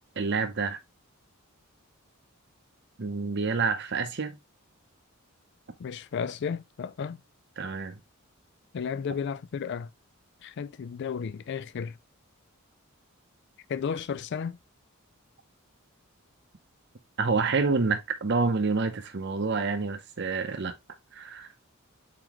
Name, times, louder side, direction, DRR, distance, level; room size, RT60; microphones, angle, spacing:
voice 1, 0.2-0.8 3.0-4.4 7.6-8.0 17.2-20.7 21.1-21.6, right 4 dB, 50° right, 0.7 m, -28 dB
voice 2, 5.8-7.2 8.7-9.9 10.4-12.0 13.7-14.6, left 6 dB, 55° left, 0.3 m, -33 dB
4.6 x 4.0 x 2.9 m
head